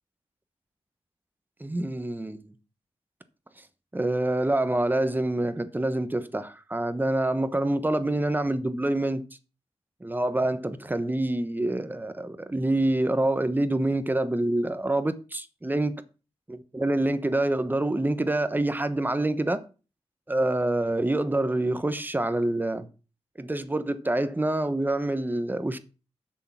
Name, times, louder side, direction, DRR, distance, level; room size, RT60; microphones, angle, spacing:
voice 1, 1.6-2.5 3.9-9.2 10.0-16.0 16.5-19.6 20.3-22.9 23.4-25.8, right 1 dB, 15° right, 1.0 m, -26 dB
7.6 x 6.5 x 5.9 m
cardioid pair, 75°, 11 cm